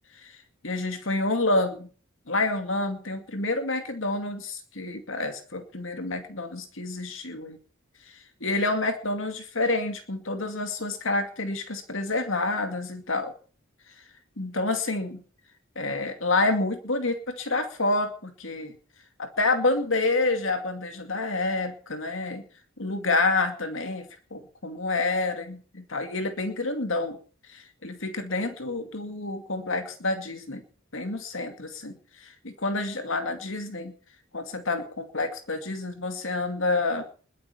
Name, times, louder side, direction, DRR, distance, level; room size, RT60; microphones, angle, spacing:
voice 1, 0.6-1.9 2.3-7.6 8.4-13.3 14.4-15.2 15.8-18.7 19.2-22.4 22.8-27.2 27.5-30.6 30.9-31.9 32.4-33.9 34.3-37.0, left 2 dB, 65° left, 7 dB, 2.4 m, -28 dB
21.5 x 8.2 x 7.0 m, 0.42 s
head